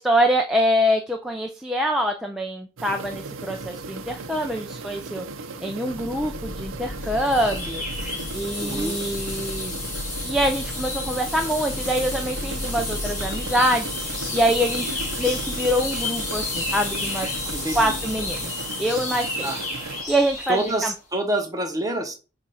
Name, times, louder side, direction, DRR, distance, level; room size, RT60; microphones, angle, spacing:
voice 1, 0.0-5.3 5.6-9.7 10.2-18.5 18.8-19.5 19.8-20.9, equal, ahead, 2 dB, 0.4 m, -25 dB
sound 1, 2.8-20.0, right 3 dB, 85° right, 0.6 m, -37 dB
sound 2, 5.9-18.5, left 1 dB, 75° left, 0.8 m, -37 dB
sound 3, 7.0-20.9, left 3 dB, 40° left, 3.6 m, -32 dB
voice 2, 8.6-8.9 17.5-17.9 19.4-19.6 20.5-22.1, right 1 dB, 15° right, 5 dB, 1.0 m, -27 dB
7.2 x 2.5 x 5.4 m, 0.33 s
head